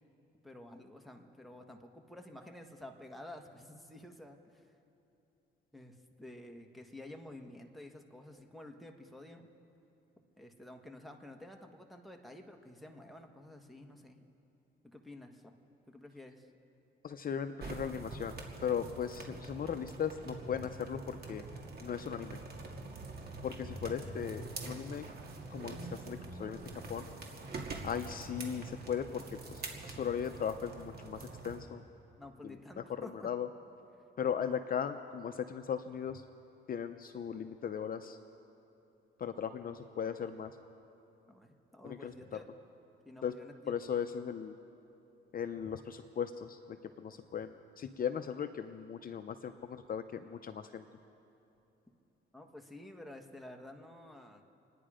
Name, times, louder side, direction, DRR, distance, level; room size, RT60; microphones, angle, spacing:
voice 1, 0.4-4.7 5.7-9.5 10.4-14.3 14.8-15.6 15.9-16.5 32.2-33.3 41.3-42.5 43.0-43.7 52.3-54.4, left 1 dB, ahead, 2 dB, 1.5 m, -51 dB
voice 2, 17.0-18.4 18.6-21.4 21.8-22.4 23.4-25.1 25.5-27.1 27.8-31.8 32.4-33.5 34.2-36.2 36.7-38.2 39.2-40.5 41.8-42.1 43.2-43.3 43.7-44.6 45.3-50.8, left 8 dB, 45° left, 8 dB, 0.7 m, -38 dB
sound 1, 17.6-31.6, right 3 dB, 50° right, 2.2 m, -45 dB
27.5 x 10.0 x 5.0 m, 2.9 s
cardioid pair, 90°, 20 cm